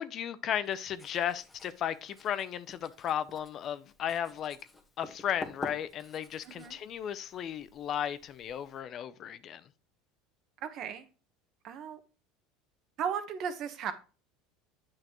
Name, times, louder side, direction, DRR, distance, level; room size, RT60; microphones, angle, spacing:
voice 1, 0.0-4.6 5.0-9.6, left 9 dB, 45° left, 0.6 m, -35 dB
Writing, 0.6-8.8, left 2 dB, 10° left, 1.4 m, -49 dB
voice 2, 6.4-6.8 10.6-11.1 11.6-12.0 13.0-13.9, right 7 dB, 50° right, 1.2 m, -35 dB
9.0 x 5.7 x 3.0 m
supercardioid pair, 115°, 0 cm